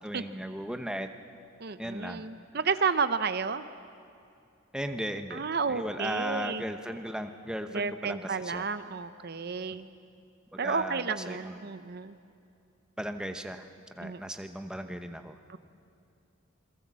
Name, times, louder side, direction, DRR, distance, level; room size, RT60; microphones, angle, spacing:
voice 1, 0.0-1.1 1.8-2.2 4.7-8.7 10.5-11.7 13.0-13.7 14.0-15.4, equal, 5° right, 7 dB, 1.0 m, -36 dB
voice 2, 1.6-3.6 5.3-6.6 7.7-9.9 10.6-12.2 14.0-14.2 15.5-15.6, right 5 dB, 50° right, 12 dB, 0.7 m, -31 dB
28.0 x 22.5 x 7.5 m, 2.5 s
head